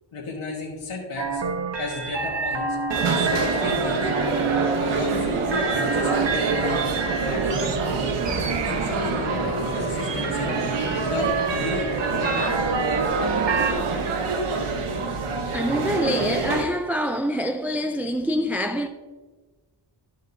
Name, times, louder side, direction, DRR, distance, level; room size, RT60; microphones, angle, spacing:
voice 1, 0.1-1.4 1.8-2.8 3.1-4.1 4.8-6.8 7.3-7.8 8.7-10.5 11.0-12.7, left 2 dB, 80° left, 1.5 m, -33 dB
sound 1, 1.2-13.7, right 4 dB, 60° right, 1.0 m, -29 dB
sound 2, 2.9-16.6, right 4 dB, 80° right, 1.1 m, -26 dB
voice 2, 15.5-18.9, equal, 5° right, 0.4 m, -25 dB
12.5 x 5.2 x 2.7 m
cardioid pair, 55°, 49 cm